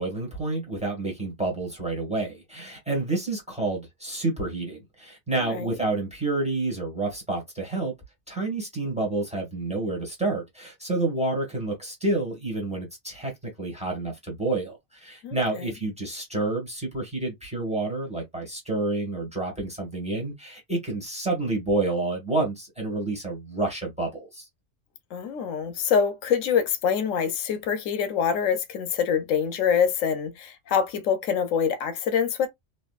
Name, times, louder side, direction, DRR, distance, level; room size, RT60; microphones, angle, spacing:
voice 1, 0.0-7.9 8.3-24.5, right 2 dB, 5° right, 1.5 m, -29 dB
voice 2, 5.3-5.8 15.2-15.7 25.1-32.5, left 7 dB, 85° left, 1.0 m, -25 dB
3.2 x 2.6 x 2.4 m
omnidirectional pair, 1.3 m